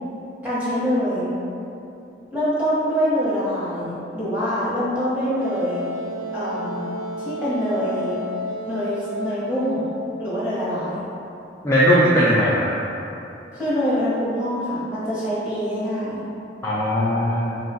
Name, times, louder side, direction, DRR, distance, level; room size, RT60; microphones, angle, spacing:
voice 1, 0.4-1.2 2.3-5.8 6.3-6.8 7.2-8.1 8.6-9.9 10.2-11.0 13.5-16.2, equal, 5° right, -12 dB, 1.2 m, -24 dB
Wind instrument woodwind instrument, 5.4-10.1, equal, 90° right, 0.5 m, -32 dB
voice 2, 11.6-12.7 16.6-17.6, equal, 15° left, -9 dB, 0.3 m, -18 dB
3.8 x 2.4 x 4.0 m, 2.8 s
head